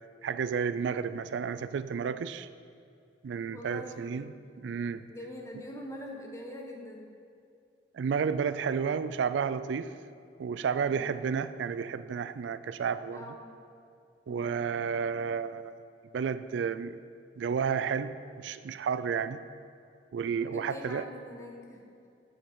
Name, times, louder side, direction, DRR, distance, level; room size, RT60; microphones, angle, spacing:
voice 1, 0.2-2.5 3.2-4.3 4.6-5.0 7.9-9.9 10.4-13.2 14.3-15.7 16.1-17.0 17.4-19.4 20.1-21.0, right 6 dB, 80° right, 14 dB, 0.3 m, -31 dB
voice 2, 3.5-4.2 5.1-7.1 10.9-11.1 13.0-13.5 14.3-14.5 19.2-19.4 20.4-21.8, left 1 dB, 15° left, 0 dB, 1.1 m, -44 dB
7.9 x 7.1 x 5.1 m, 2.5 s
head